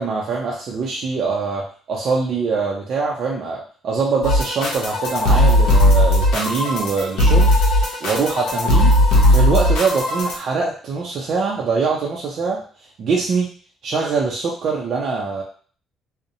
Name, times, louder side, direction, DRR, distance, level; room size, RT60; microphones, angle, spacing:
voice 1, 0.0-7.5 8.0-9.0 9.3-12.6 13.0-13.5 13.8-15.4, right 4 dB, 50° right, -3 dB, 0.4 m, -23 dB
sound 1, 4.2-10.4, left 1 dB, 85° left, 0.6 m, -16 dB
2.7 x 2.0 x 2.6 m, 0.43 s
cardioid pair, 140°, 0 cm